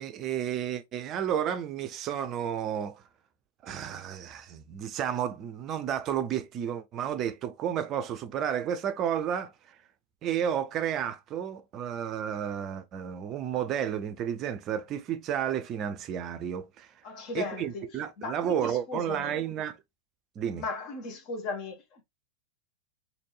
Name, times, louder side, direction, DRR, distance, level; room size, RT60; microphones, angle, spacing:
voice 1, 0.0-3.0 3.6-9.5 10.2-16.9 17.3-19.8 20.4-20.6, right 9 dB, 35° right, 0.5 m, -32 dB
voice 2, 17.0-17.9 18.2-19.4 20.6-22.0, left 3 dB, 40° left, 1.3 m, -37 dB
4.2 x 2.8 x 3.1 m
figure-of-eight pair, 90°, 0 cm